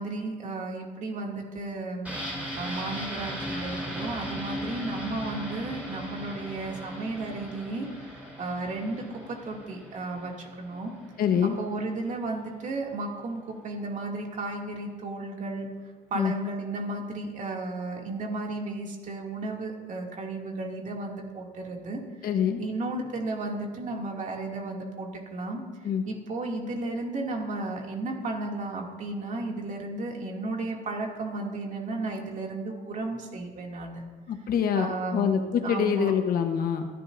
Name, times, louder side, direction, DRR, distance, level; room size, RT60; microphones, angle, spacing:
voice 1, 0.0-2.2 2.6-10.9 11.4-15.7 16.1-25.6 26.0-34.0 34.7-36.1, right 2 dB, 45° right, 0 dB, 2.6 m, -34 dB
sound 1, 2.0-11.7 12.0-12.1, equal, 10° right, 5.0 m, -38 dB
voice 2, 11.2-11.6 16.1-16.3 22.2-22.6 25.8-26.0 34.3-36.9, left 7 dB, 60° left, 6 dB, 1.2 m, -25 dB
29.5 x 11.0 x 2.7 m, 1.4 s
cardioid pair, 110°, 17 cm